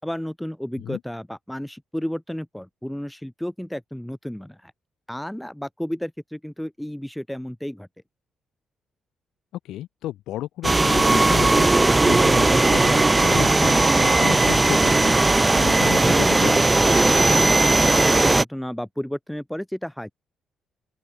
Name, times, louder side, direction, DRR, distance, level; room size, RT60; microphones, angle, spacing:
voice 1, 0.0-4.7 5.1-7.9 17.3-20.1, equal, 5° left, 3.7 m, -32 dB
voice 2, 9.6-16.6, left 14 dB, 85° left, 1.6 m, -33 dB
sound 1, 10.6-18.4, right 2 dB, 15° right, 0.3 m, -17 dB
open air
cardioid pair, 90°, 0 cm